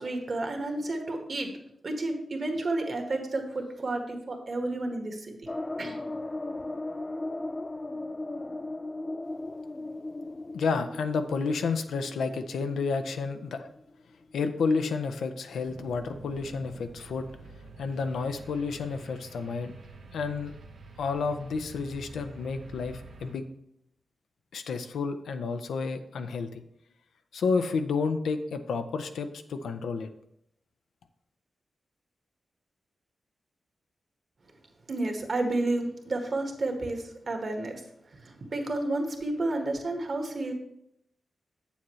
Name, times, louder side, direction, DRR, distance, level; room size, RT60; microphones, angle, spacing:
voice 1, 0.0-1.5 1.8-5.4 5.8-6.0 34.9-37.8 38.2-40.5, right 2 dB, 55° right, 3 dB, 1.5 m, -31 dB
sound 1, 5.5-14.0 14.3-14.4 14.7-14.8, left 2 dB, 25° left, 0.3 m, -37 dB
voice 2, 10.5-13.7 14.3-17.3 17.8-19.7 20.1-20.5 21.0-23.4 24.5-26.6 27.3-30.1, left 4 dB, 85° left, 8 dB, 0.5 m, -30 dB
sound 2, 15.7-23.3, right 3 dB, 85° right, 1.0 m, -48 dB
7.4 x 7.0 x 3.1 m, 0.78 s
cardioid pair, 55°, 0 cm